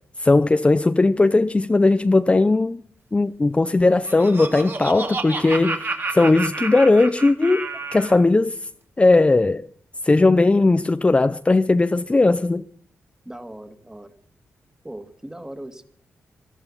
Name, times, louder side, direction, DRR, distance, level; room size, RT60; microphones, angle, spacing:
voice 1, 0.2-2.8 3.1-7.7 7.9-8.6 9.0-9.7 10.0-12.6, left 3 dB, 25° left, 0.6 m, -18 dB
Laughter, 3.8-8.2, right 3 dB, 45° right, 2.5 m, -30 dB
voice 2, 13.2-14.1 14.8-15.9, right 1 dB, 10° right, 2.2 m, -38 dB
18.5 x 13.0 x 5.6 m
cardioid pair, 75°, 5 cm